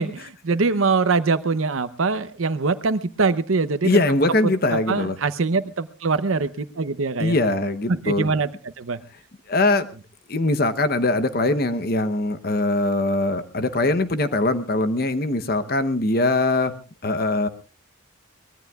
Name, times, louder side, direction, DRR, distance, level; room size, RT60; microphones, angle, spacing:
voice 1, 0.0-3.9 4.4-7.4 7.9-9.0, right 4 dB, 80° right, 12 dB, 0.7 m, -23 dB
voice 2, 3.8-5.1 7.2-8.3 9.5-9.9 10.3-16.7 17.0-17.5, left 2 dB, 45° left, 10 dB, 0.8 m, -22 dB
23.5 x 20.0 x 2.3 m, 0.34 s
head